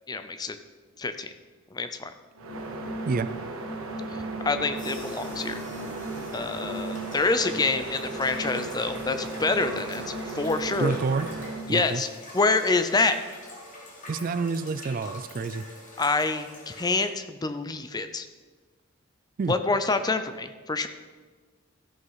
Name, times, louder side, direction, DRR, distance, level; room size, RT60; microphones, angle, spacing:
voice 1, 0.1-0.6 1.0-1.3 1.7-2.1 4.4-5.6 6.3-11.0 11.7-12.1 12.3-13.2 16.0-18.3 19.5-20.9, left 3 dB, 20° left, 10 dB, 0.5 m, -26 dB
sound 1, 2.4-11.7, right 2 dB, 85° right, 1.4 m, -35 dB
sound 2, 4.7-17.1, left 1 dB, 40° left, 2.4 m, -44 dB
voice 2, 10.8-11.3 11.7-12.0 14.1-15.6 19.4-19.5, right 4 dB, 40° right, 13 dB, 0.3 m, -28 dB
13.5 x 6.3 x 5.6 m, 1.4 s
head